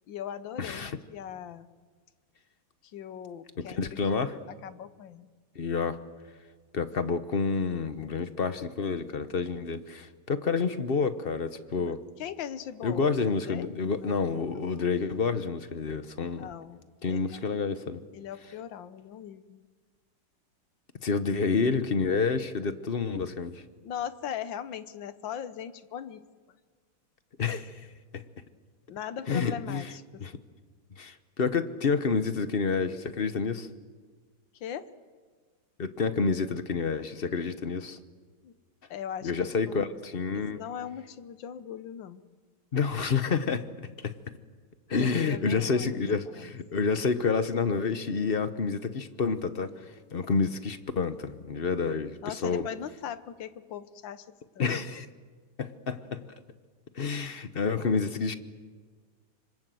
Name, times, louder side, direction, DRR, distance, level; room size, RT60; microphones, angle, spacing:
voice 1, 0.1-1.7 2.9-3.9 4.3-5.3 11.8-11.9 12.2-14.2 16.3-17.4 18.1-19.6 23.8-26.2 28.9-30.3 34.5-34.9 38.4-38.5 38.9-39.3 39.6-39.7 40.3-42.2 45.0-46.0 46.4-46.5 52.2-54.8, left 9 dB, 75° left, 13 dB, 1.7 m, -40 dB
voice 2, 0.6-1.0 3.6-4.4 5.5-6.0 6.7-12.0 12.8-16.5 17.0-18.0 21.0-23.6 27.4-27.9 28.1-28.2 29.3-29.9 30.2-30.4 31.0-33.7 35.8-38.0 39.2-40.6 42.7-43.7 44.0-44.1 44.9-49.7 50.1-52.7 54.6-55.1 55.6-56.2 56.9-58.3, left 5 dB, 40° left, 11 dB, 0.9 m, -29 dB
26.0 x 25.5 x 7.8 m, 1.5 s
omnidirectional pair, 2.1 m